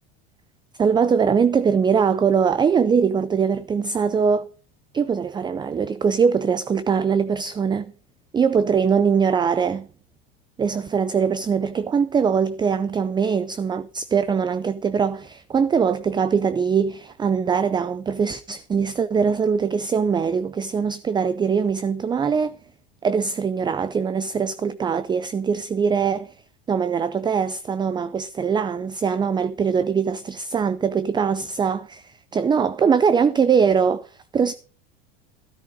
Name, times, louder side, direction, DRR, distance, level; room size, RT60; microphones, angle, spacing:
voice 1, 0.8-4.5 4.9-7.9 8.3-9.9 10.6-22.6 23.0-26.3 26.7-34.5, right 6 dB, 15° right, 0.5 m, -22 dB
13.0 x 9.1 x 4.9 m
supercardioid pair, 110°, 30 cm